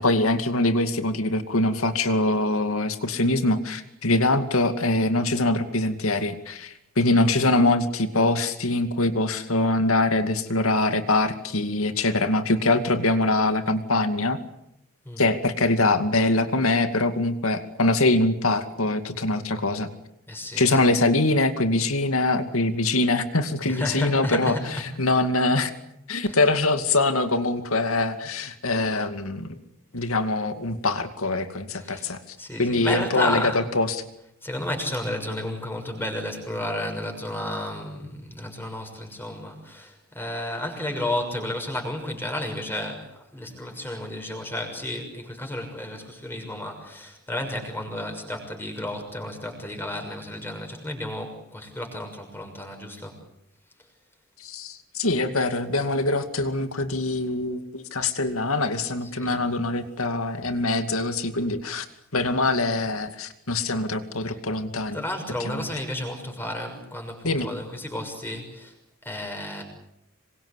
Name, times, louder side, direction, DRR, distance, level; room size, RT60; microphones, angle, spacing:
voice 1, 0.0-14.4 15.2-19.9 20.6-25.7 26.1-29.6 29.9-34.0 54.4-61.9 62.1-65.0 65.4-65.6 67.2-67.5, left 2 dB, 75° left, 8 dB, 2.4 m, -23 dB
voice 2, 20.3-20.9 23.7-24.6 26.3-26.4 31.8-32.0 32.4-33.6 34.4-53.2 59.2-59.4 64.9-68.7 69.0-69.6, left 1 dB, 10° left, 4 dB, 6.4 m, -32 dB
27.0 x 23.5 x 8.2 m, 0.82 s
head